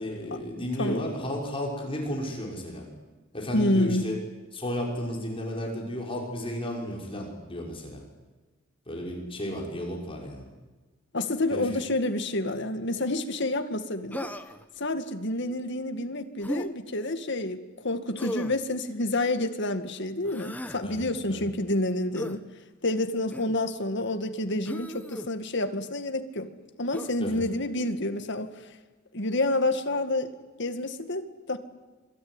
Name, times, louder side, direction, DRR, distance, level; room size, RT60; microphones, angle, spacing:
voice 1, 0.0-2.9 3.3-4.2 4.5-8.0 8.9-10.4 11.5-11.7 20.8-21.0 21.3-21.4 27.2-27.4, left 1 dB, 30° left, -1 dB, 6.3 m, -33 dB
voice 2, 0.8-1.1 3.5-4.1 11.1-14.3 14.8-22.4 22.8-26.5 26.8-28.5 29.1-30.3 30.6-31.6, left 1 dB, 60° left, 8 dB, 2.1 m, -28 dB
Human voice, 14.1-14.7 16.4-16.7 18.2-18.6 20.2-20.8 22.2-22.4 23.3-23.6 24.7-25.3 26.9-27.2, left 1 dB, 10° left, 1.2 m, -36 dB
26.5 x 22.5 x 9.8 m, 1.3 s
head